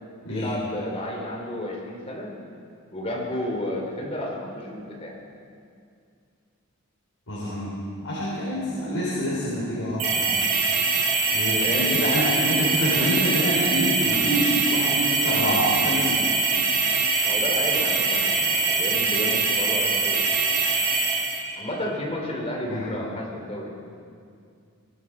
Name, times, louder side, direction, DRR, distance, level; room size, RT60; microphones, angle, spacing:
voice 1, 0.3-2.3 2.9-5.2 11.6-12.7 17.2-20.2 21.6-23.7, left 1 dB, 25° left, -1 dB, 2.8 m, -32 dB
voice 2, 7.3-7.7 8.0-10.4 11.3-16.5 22.6-22.8, equal, 65° left, -8 dB, 4.1 m, -26 dB
sound 1, 10.0-21.4, right 4 dB, 75° right, 4.1 m, -23 dB
22.0 x 13.0 x 4.9 m, 2.3 s
head